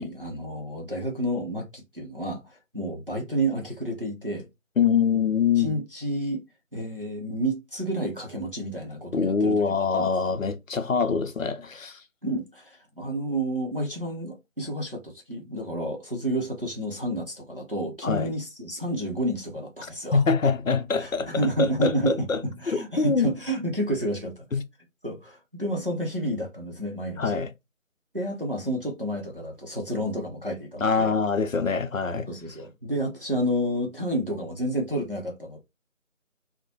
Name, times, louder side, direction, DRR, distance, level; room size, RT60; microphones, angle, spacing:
voice 1, 0.0-4.5 5.6-6.4 6.7-10.3 12.2-20.2 21.0-24.5 25.0-27.4 28.1-31.2 32.3-35.6, right 1 dB, 40° right, 0.6 m, -30 dB
voice 2, 4.8-5.7 9.1-12.0 18.0-18.3 20.1-23.3 24.5-24.6 27.2-27.5 30.8-32.3, left 5 dB, 70° left, 0.6 m, -24 dB
2.4 x 2.0 x 2.8 m
figure-of-eight pair, 170°, 41 cm